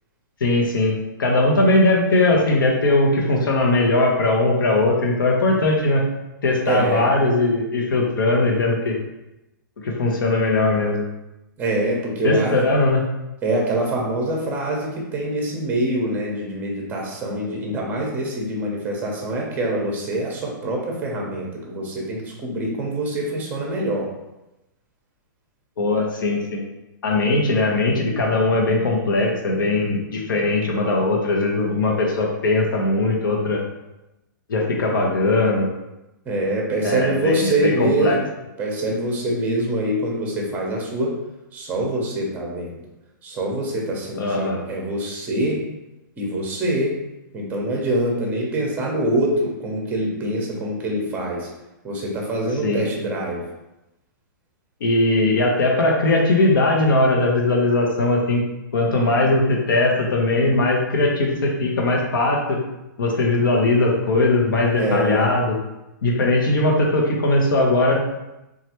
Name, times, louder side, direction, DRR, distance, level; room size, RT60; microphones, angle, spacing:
voice 1, 0.4-6.0 6.4-8.9 9.8-11.0 12.2-13.0 25.8-26.6 27.0-33.6 34.5-35.7 36.8-38.2 44.2-44.6 52.6-52.8 54.8-58.4 58.7-62.6 63.0-65.6 66.0-68.0, left 2 dB, 80° left, -1 dB, 0.8 m, -19 dB
voice 2, 6.6-7.1 11.6-12.7 13.4-24.1 36.2-38.3 38.6-41.1 41.5-42.7 43.2-45.6 46.2-47.0 47.3-51.5 51.8-53.4 64.8-65.3, right 1 dB, 15° right, -1 dB, 0.7 m, -24 dB
3.1 x 2.4 x 2.9 m, 0.95 s
hypercardioid pair, 150°, 11 cm